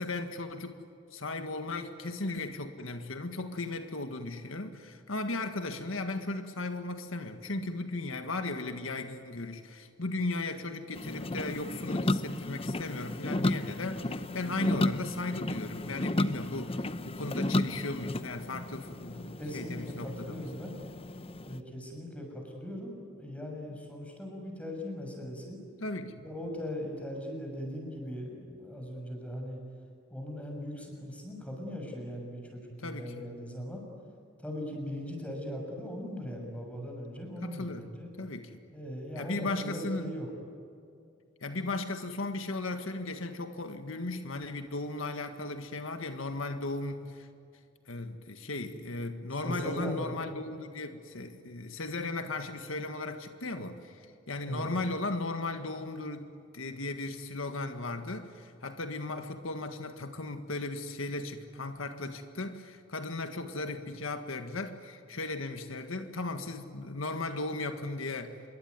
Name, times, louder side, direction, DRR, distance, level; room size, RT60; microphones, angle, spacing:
voice 1, 0.0-20.5 25.8-26.2 32.8-33.3 37.4-37.9 38.2-38.6 39.2-40.1 41.4-47.3 47.9-68.4, left 2 dB, 85° left, 7 dB, 1.7 m, -36 dB
sound 1, 10.9-21.6, left 1 dB, 30° left, 0.8 m, -33 dB
voice 2, 18.9-20.8 21.4-25.6 26.2-29.6 30.1-33.8 34.4-38.1 38.7-40.3 49.4-50.1 54.4-54.7, left 1 dB, 5° left, 1 dB, 6.6 m, -39 dB
27.0 x 23.0 x 9.6 m, 2.5 s
head